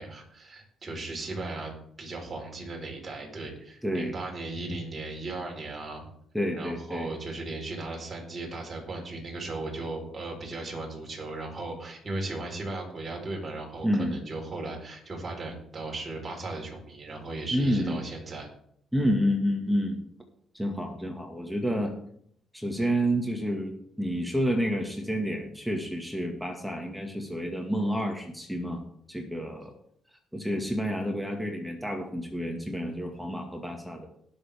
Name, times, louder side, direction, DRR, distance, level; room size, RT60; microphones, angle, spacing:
voice 1, 0.0-6.0 6.5-18.5, right 2 dB, 35° right, 0 dB, 4.3 m, -37 dB
voice 2, 3.8-4.1 6.3-7.1 13.8-14.2 17.5-18.0 18.9-20.0 20.5-21.9 22.5-28.8 29.1-29.7 30.3-34.1, equal, ahead, 2 dB, 1.9 m, -29 dB
18.5 x 7.0 x 3.6 m, 0.67 s
cardioid pair, 90°, 0 cm